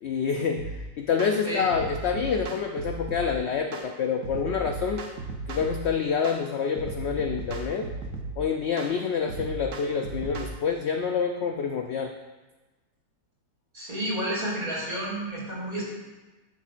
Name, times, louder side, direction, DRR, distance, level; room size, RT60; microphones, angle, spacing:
voice 1, 0.0-5.0 5.5-7.9 8.4-12.1, left 6 dB, 75° left, 4 dB, 0.6 m, -27 dB
sound 1, 0.6-0.8 1.2-1.4 1.7-3.3 3.7-3.9 4.2-5.8 6.2-6.4 6.8-8.4 8.8-8.9 9.3-10.5, right 3 dB, 60° right, 1.1 m, -36 dB
voice 2, 13.7-15.8, right 1 dB, 35° right, -6 dB, 3.0 m, -30 dB
11.0 x 7.2 x 2.5 m, 1.2 s
omnidirectional pair, 1.7 m